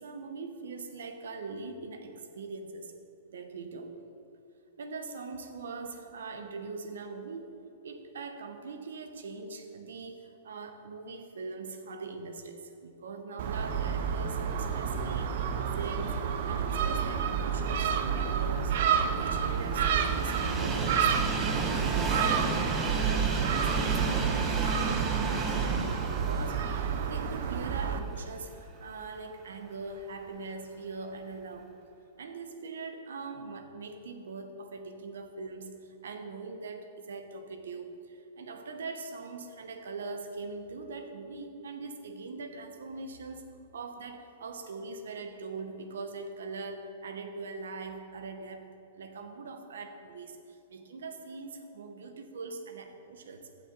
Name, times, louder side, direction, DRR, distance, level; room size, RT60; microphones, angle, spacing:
voice 1, 0.0-3.0 3.3-4.0 4.8-7.6 7.8-15.4 15.8-18.8 19.2-22.1 22.8-31.7 32.2-43.5 43.7-53.5, right 4 dB, 85° right, 7 dB, 1.0 m, -42 dB
Gull seagull, 13.4-28.0, right 7 dB, 65° right, 0.7 m, -30 dB
sound 1, 13.5-22.2, right 1 dB, 5° right, 1.5 m, -45 dB
Train, 18.1-28.3 28.7-28.8 29.9-30.0, right 3 dB, 25° right, 1.1 m, -33 dB
15.0 x 5.7 x 4.0 m, 2.9 s
hypercardioid pair, 135°, 0 cm